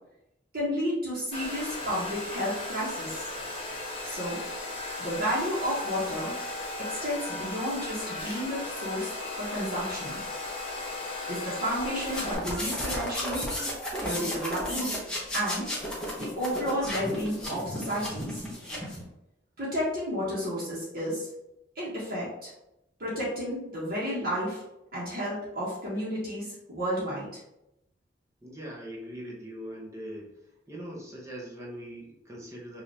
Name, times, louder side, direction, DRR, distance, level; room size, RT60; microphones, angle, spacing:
voice 1, 0.5-3.2 4.0-4.4 5.0-6.4 6.8-10.2 11.3-13.5 14.0-15.0 15.3-15.8 16.2-18.4 19.6-21.3 21.7-22.5 23.0-24.6 24.9-27.4, equal, 55° right, -8 dB, 1.3 m, -32 dB
Domestic sounds home sounds, 1.3-12.4, left 2 dB, 30° left, 1.3 m, -36 dB
sound 1, 12.0-19.0, left 1 dB, 5° left, 1.1 m, -33 dB
voice 2, 28.4-30.3 30.7-32.8, equal, 15° right, -3 dB, 0.9 m, -41 dB
5.3 x 2.8 x 2.9 m, 0.87 s
head